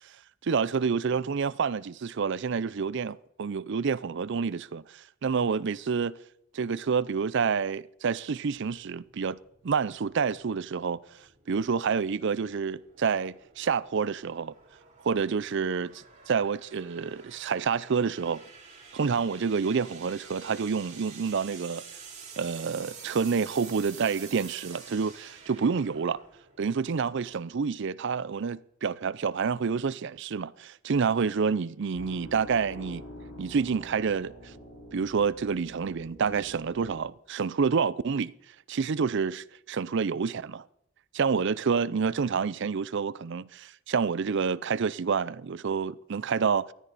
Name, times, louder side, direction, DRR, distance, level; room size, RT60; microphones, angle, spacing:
voice 1, 0.4-6.2 6.5-9.4 9.6-11.0 11.5-14.5 15.0-18.4 18.9-21.8 22.4-26.2 26.6-33.0 33.4-34.5 34.9-38.3 38.7-40.6 41.1-46.7, right 5 dB, 60° right, 0.5 m, -28 dB
sound 1, 9.0-27.6, right 6 dB, 35° right, 4.1 m, -49 dB
sound 2, 31.9-37.0, equal, 65° left, 4.9 m, -47 dB
14.5 x 13.0 x 4.0 m
head